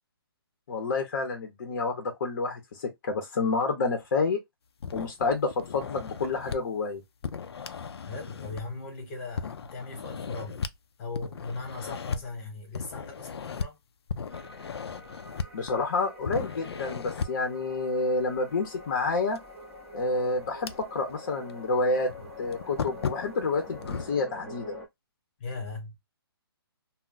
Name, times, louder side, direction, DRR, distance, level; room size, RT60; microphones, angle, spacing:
voice 1, 0.7-4.4 4.9-7.0 15.5-19.4 19.9-22.1 22.4-24.8, left 3 dB, 45° left, 0.7 m, -29 dB
sound 1, 4.8-6.6 7.2-8.8 9.4-10.8 11.1-12.2 12.7-13.7 14.1-15.9 16.2-17.5 19.3-19.4 20.0-21.2 21.5-21.6 22.1-24.1, left 6 dB, 80° left, 0.4 m, -36 dB
voice 2, 8.0-10.7 11.0-13.8 25.4-26.0, left 3 dB, 25° left, 1.0 m, -38 dB
sound 2, 14.3-24.9, left 1 dB, ahead, 0.6 m, -46 dB
2.2 x 2.0 x 3.8 m
hypercardioid pair, 165°, 13 cm